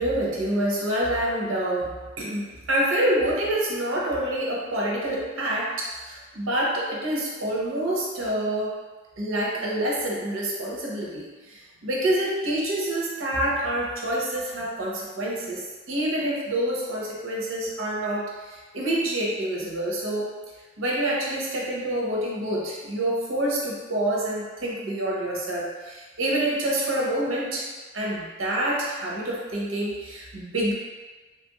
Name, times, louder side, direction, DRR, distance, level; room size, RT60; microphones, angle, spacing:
voice 1, 0.0-8.8 9.2-20.3 20.8-27.7 27.9-30.7, right 1 dB, 75° right, -4 dB, 0.7 m, -27 dB
2.9 x 2.5 x 2.8 m, 1.3 s
head